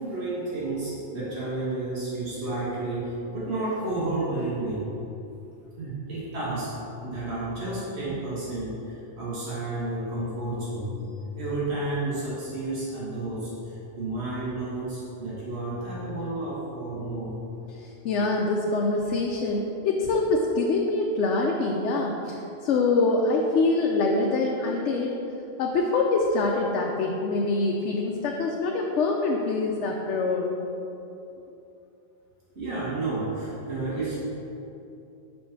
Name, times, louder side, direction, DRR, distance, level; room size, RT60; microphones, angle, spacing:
voice 1, 0.0-4.8 5.8-6.7 7.0-11.0 11.4-17.3 32.6-34.2, right 2 dB, 65° right, -9 dB, 2.0 m, -31 dB
voice 2, 17.7-25.2 25.6-30.6, left 3 dB, 85° left, 0 dB, 0.9 m, -25 dB
5.4 x 5.2 x 5.9 m, 2.8 s
omnidirectional pair, 1.2 m